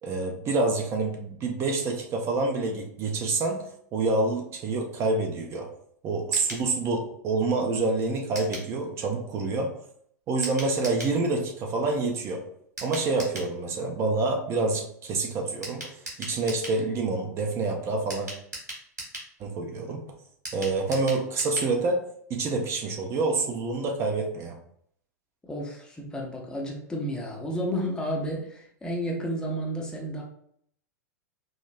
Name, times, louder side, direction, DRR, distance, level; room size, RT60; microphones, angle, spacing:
voice 1, 0.0-3.6 3.9-5.7 6.0-9.7 10.3-12.4 12.8-15.8 16.2-18.3 19.4-20.0 20.5-22.0 22.3-24.6, right 3 dB, 30° right, 2 dB, 0.6 m, -27 dB
sound 1, 6.3-6.7 8.3-8.7 10.4-11.2 12.8-13.5 15.6-16.8 18.1-19.3 20.4-21.7 22.0-22.1 22.4-22.5, right 1 dB, 75° right, 1.5 m, -38 dB
voice 2, 25.4-30.2, equal, 10° left, -1 dB, 0.6 m, -31 dB
5.0 x 2.0 x 2.4 m, 0.66 s
figure-of-eight pair, 90°, 9 cm